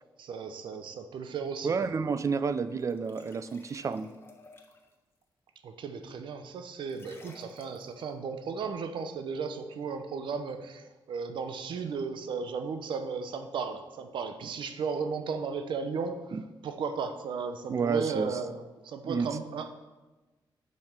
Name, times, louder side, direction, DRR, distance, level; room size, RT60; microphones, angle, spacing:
voice 1, 0.2-1.7 5.6-16.4 16.6-19.7, right 5 dB, 85° right, 8 dB, 0.8 m, -35 dB
voice 2, 1.6-4.1 16.3-16.4 17.7-18.4 19.0-19.3, right 5 dB, 40° right, 12 dB, 0.5 m, -30 dB
sound 1, 2.8-4.9 6.9-8.0, left 2 dB, 30° left, 1.2 m, -55 dB
7.5 x 5.7 x 6.5 m, 1.2 s
wide cardioid pair, 135°, 8 cm